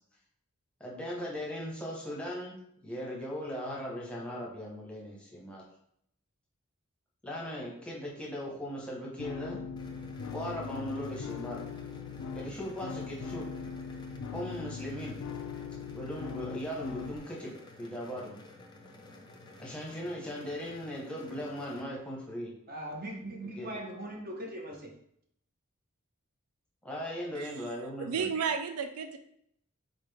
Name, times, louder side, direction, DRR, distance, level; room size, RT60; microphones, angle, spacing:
voice 1, 0.8-2.6 2.8-5.6 7.2-9.6 10.3-11.7 12.3-13.5 14.3-15.2 15.9-18.4 19.6-22.5 23.6-23.8 26.8-28.3, equal, 5° left, -4 dB, 0.9 m, -38 dB
sound 1, 9.2-17.2, left 5 dB, 80° left, 0.4 m, -40 dB
sound 2, 9.8-21.8, left 2 dB, 20° left, 0.4 m, -52 dB
voice 2, 22.7-24.9, right 1 dB, 40° right, 1 dB, 0.8 m, -40 dB
voice 3, 28.0-29.2, right 6 dB, 80° right, 7 dB, 0.4 m, -32 dB
4.1 x 3.7 x 3.3 m, 0.71 s
head